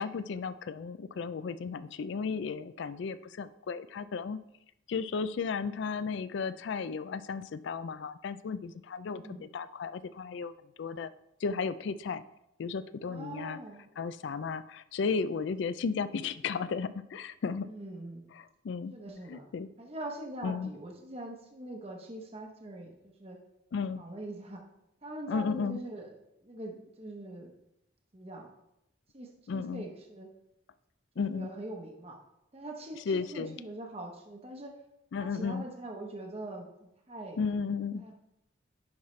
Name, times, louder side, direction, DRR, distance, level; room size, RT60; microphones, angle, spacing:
voice 1, 0.0-4.4 4.9-10.5 10.8-11.1 11.4-12.2 12.6-13.6 14.0-17.7 18.3-18.9 19.3-19.7 20.4-20.7 23.7-24.0 25.3-25.8 29.5-29.8 31.2-31.5 33.1-33.6 35.1-35.7 37.4-38.1, left 5 dB, 65° left, 14 dB, 0.3 m, -34 dB
voice 2, 9.1-9.4 13.0-13.9 17.6-18.3 18.9-19.5 19.8-23.4 24.0-24.6 25.0-26.1 26.4-27.5 28.1-28.5 29.1-30.3 31.2-32.2 32.5-34.7 35.2-36.7 37.1-37.4 37.6-37.7 38.0-38.1, right 1 dB, 30° right, 1 dB, 0.8 m, -43 dB
10.5 x 5.6 x 3.2 m, 0.84 s
head